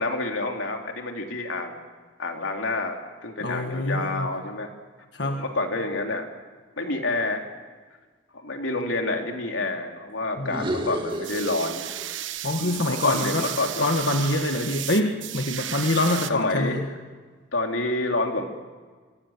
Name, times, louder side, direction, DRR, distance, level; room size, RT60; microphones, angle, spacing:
voice 1, 0.0-1.8 2.2-4.7 5.2-6.3 6.8-7.4 8.3-11.9 12.6-13.9 16.3-16.8 17.5-18.5, left 2 dB, 85° left, 3 dB, 3.3 m, -28 dB
voice 2, 3.4-4.3 5.1-5.4 10.4-10.6 12.4-13.5 13.8-16.8, left 2 dB, 60° left, 3 dB, 1.6 m, -25 dB
sound 1, 10.4-12.2 12.5-14.7, right 1 dB, 25° right, 2.1 m, -34 dB
sound 2, 11.1-16.3, right 12 dB, 75° right, 1.1 m, -34 dB
25.5 x 25.0 x 7.4 m, 1.5 s
head